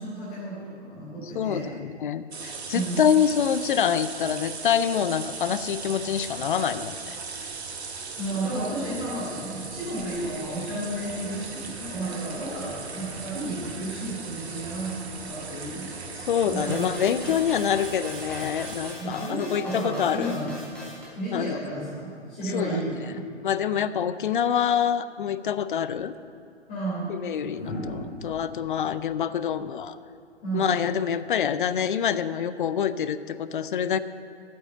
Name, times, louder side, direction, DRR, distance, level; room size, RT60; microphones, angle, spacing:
voice 1, 0.0-1.7 2.7-3.1 8.2-17.4 19.0-20.5 21.1-23.2 26.7-27.1 30.4-30.9, right 1 dB, 20° left, -9 dB, 3.4 m, -32 dB
voice 2, 1.3-7.2 16.3-20.3 21.3-21.6 22.4-22.8 23.4-26.1 27.1-30.0 30.5-34.0, left 8 dB, 45° left, 14 dB, 0.5 m, -26 dB
sound 1, 2.3-18.9, right 4 dB, 65° right, 1.4 m, -38 dB
sound 2, 16.7-21.1, equal, 5° left, 2.5 m, -42 dB
sound 3, 26.1-26.2 27.5-30.6 32.1-32.4, left 1 dB, 65° left, 2.4 m, -39 dB
8.8 x 8.1 x 8.7 m, 2.5 s
figure-of-eight pair, 120°, 35 cm